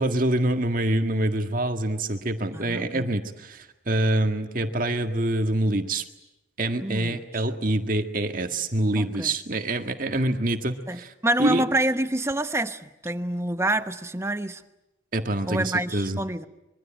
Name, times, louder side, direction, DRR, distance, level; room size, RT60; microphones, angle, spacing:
voice 1, 0.0-6.0 6.6-11.1 11.4-11.7 15.1-16.2, right 1 dB, 45° right, 6 dB, 1.8 m, -25 dB
voice 2, 2.5-3.0 6.8-7.5 9.0-9.3 10.9-14.6 15.5-16.5, right 1 dB, 15° right, 10 dB, 1.0 m, -27 dB
25.0 x 23.5 x 9.0 m, 0.94 s
head